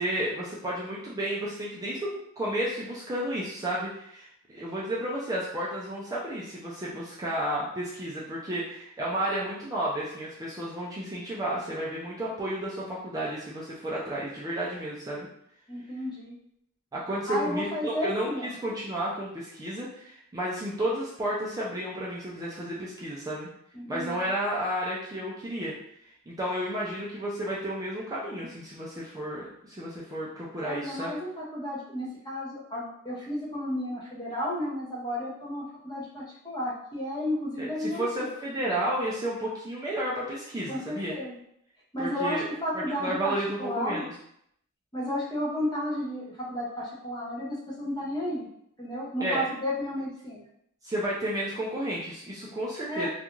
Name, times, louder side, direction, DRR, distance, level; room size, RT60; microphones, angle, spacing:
voice 1, 0.0-15.3 16.9-23.5 23.9-25.8 26.3-31.1 37.6-41.1 42.0-42.5 42.7-44.1 49.2-49.4 50.8-53.1, right 1 dB, 15° right, -6 dB, 0.3 m, -32 dB
voice 2, 15.7-16.4 17.3-18.5 23.7-24.1 30.6-38.3 40.7-41.3 41.9-43.3 43.6-44.1 44.9-48.5 48.8-50.4 52.9-53.1, left 1 dB, 20° left, -4 dB, 0.6 m, -32 dB
2.4 x 2.2 x 2.9 m, 0.73 s
head